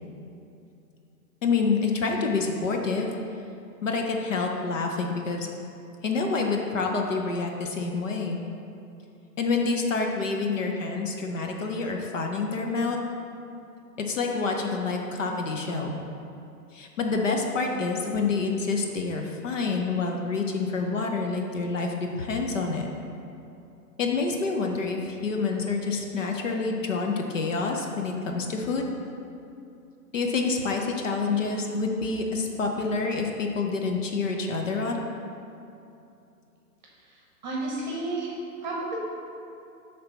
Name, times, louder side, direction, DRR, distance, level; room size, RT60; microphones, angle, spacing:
voice 1, 1.4-3.1 3.8-5.5 6.0-8.4 9.4-13.0 14.0-16.0 16.7-22.9 24.0-28.9 30.1-35.0, left 4 dB, 50° left, 2 dB, 0.7 m, -27 dB
voice 2, 37.0-39.0, right 2 dB, 30° right, -3 dB, 1.0 m, -32 dB
9.9 x 3.4 x 3.9 m, 2.7 s
hypercardioid pair, 165°, 48 cm